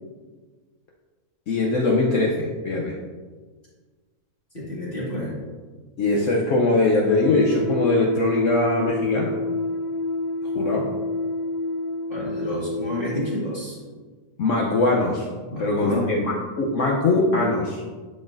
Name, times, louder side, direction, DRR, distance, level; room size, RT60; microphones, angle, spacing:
voice 1, 1.5-3.0 6.0-9.3 10.5-10.9 14.4-15.3 15.6-17.8, left 2 dB, 60° left, -2 dB, 1.0 m, -21 dB
voice 2, 4.5-5.4 12.1-13.8 15.5-16.1, left 1 dB, 35° left, -8 dB, 1.8 m, -29 dB
sound 1, 7.1-13.4, left 2 dB, 80° left, 1.3 m, -28 dB
11.0 x 4.2 x 2.5 m, 1.4 s
omnidirectional pair, 1.6 m